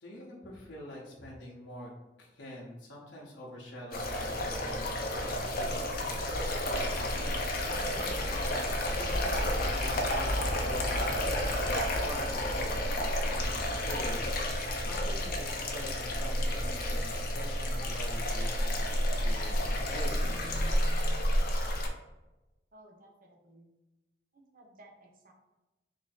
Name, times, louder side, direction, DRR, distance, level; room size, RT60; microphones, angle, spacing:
voice 1, 0.0-1.9 2.2-8.6 8.9-12.9 13.3-18.7 19.2-19.7 19.9-20.6, equal, 85° left, -4 dB, 0.9 m, -45 dB
sound 1, 3.9-21.9, left 1 dB, 55° left, 0.6 m, -31 dB
voice 2, 22.7-23.1 23.4-23.7 24.5-25.3, right 1 dB, 55° right, 1 dB, 0.7 m, -56 dB
3.2 x 2.7 x 4.0 m, 1.0 s
head